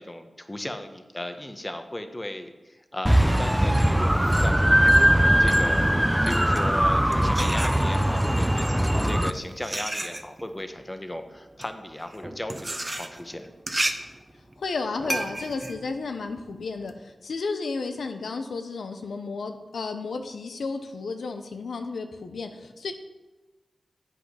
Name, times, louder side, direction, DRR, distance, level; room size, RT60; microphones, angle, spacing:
voice 1, 0.0-13.5, left 1 dB, 20° left, 7 dB, 0.9 m, -36 dB
sound 1, 3.1-9.3, equal, 5° right, 0.4 m, -20 dB
sound 2, 6.3-8.3 9.0-16.9, right 1 dB, 25° right, 0.8 m, -33 dB
voice 2, 14.6-22.9, left 4 dB, 90° left, 6 dB, 0.7 m, -33 dB
8.3 x 5.5 x 5.6 m, 1.1 s
cardioid pair, 55°, 0 cm